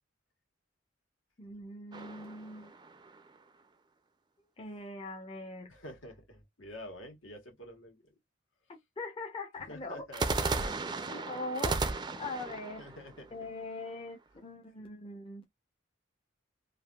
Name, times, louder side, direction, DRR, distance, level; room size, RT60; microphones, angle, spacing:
voice 1, 1.4-2.7 4.6-5.7 8.7-10.0 11.1-12.8 13.3-15.5, left 2 dB, 30° left, 0.7 m, -42 dB
sound 1, 1.9-3.4 10.1-14.1, right 3 dB, 25° right, 0.4 m, -35 dB
voice 2, 5.7-8.1 9.7-11.0 12.8-13.3, left 1 dB, 75° left, 1.5 m, -48 dB
3.4 x 2.5 x 2.3 m
head